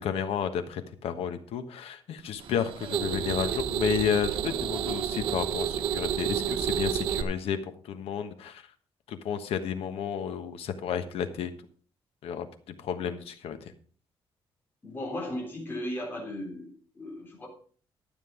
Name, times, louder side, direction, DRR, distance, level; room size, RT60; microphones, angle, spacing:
voice 1, 0.0-7.6 7.8-8.6 9.1-11.5 12.2-12.5 12.8-13.7, left 8 dB, 85° left, 9 dB, 1.3 m, -32 dB
sound 1, 2.4-7.2, right 9 dB, 65° right, 1.0 m, -30 dB
voice 2, 14.8-17.5, left 1 dB, 20° left, -2 dB, 3.7 m, -36 dB
12.0 x 7.6 x 5.0 m, 0.43 s
cardioid pair, 150°, 10 cm